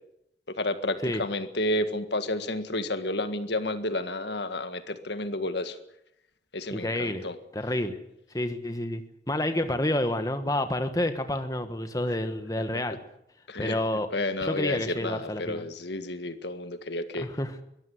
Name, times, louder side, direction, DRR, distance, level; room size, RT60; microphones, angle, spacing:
voice 1, 0.5-5.8 6.5-7.4 13.5-13.8 14.1-17.3, left 1 dB, 70° left, 10 dB, 1.8 m, -31 dB
voice 2, 6.7-7.3 7.5-8.0 8.3-9.0 9.3-13.0 13.6-14.1 14.4-15.6 17.2-17.5, left 1 dB, 20° left, 8 dB, 1.3 m, -29 dB
22.5 x 14.0 x 9.7 m, 0.79 s
head